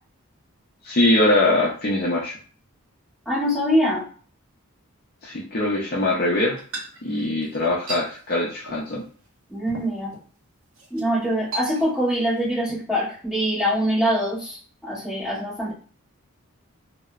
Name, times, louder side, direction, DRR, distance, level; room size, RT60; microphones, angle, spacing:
voice 1, 0.8-2.3 5.2-6.6 7.0-9.0, left 1 dB, 45° left, -4 dB, 0.5 m, -22 dB
voice 2, 3.2-4.1 9.5-10.1 10.9-15.7, equal, ahead, -11 dB, 1.4 m, -24 dB
sound 1, 6.6-8.1 8.6-8.9 9.2-9.3 9.7-10.3 10.7-11.0 11.5-12.2 12.4-12.8, right 2 dB, 70° right, 0.7 m, -36 dB
2.9 x 2.0 x 2.4 m, 0.41 s
head